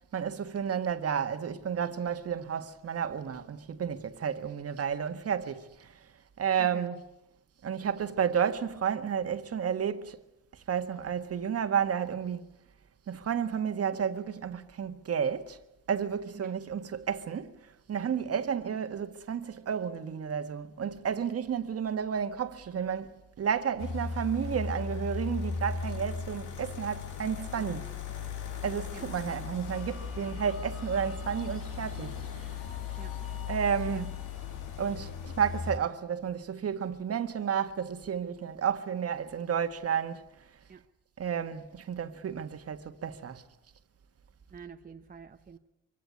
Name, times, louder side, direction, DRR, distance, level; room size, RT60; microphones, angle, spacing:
voice 1, 0.1-5.9 6.4-7.0 7.6-10.2 10.7-12.4 13.1-15.6 15.9-17.5 17.9-27.9 28.6-32.5 33.5-34.1 34.8-40.2 41.2-43.4, right 7 dB, 50° right, 1.7 m, -31 dB
sound 1, 23.8-35.8, left 5 dB, 80° left, 2.4 m, -37 dB
voice 2, 27.5-28.0 28.9-29.0 33.0-33.1 33.9-34.0 40.7-40.8 44.5-45.6, right 5 dB, 30° right, 1.0 m, -47 dB
sound 2, 29.7-35.7, left 5 dB, 45° left, 4.7 m, -53 dB
23.5 x 17.0 x 9.5 m
cardioid pair, 90°, 30 cm